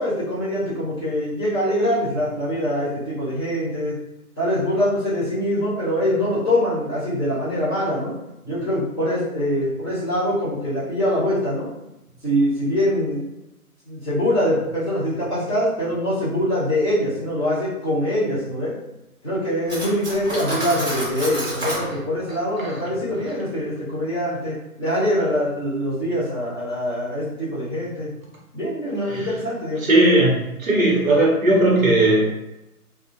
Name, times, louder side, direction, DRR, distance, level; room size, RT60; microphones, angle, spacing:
voice 1, 0.0-3.9 4.4-8.1 8.5-11.7 12.2-13.3 13.8-18.7 19.2-28.1 28.5-29.9, equal, 15° left, -14 dB, 0.8 m, -23 dB
Cutlery silverware, 19.7-21.9, right 1 dB, 35° right, 1.2 m, -28 dB
voice 2, 29.8-32.3, right 1 dB, 60° right, -2 dB, 0.9 m, -17 dB
2.5 x 2.1 x 2.7 m, 0.92 s
hypercardioid pair, 170°, 45 cm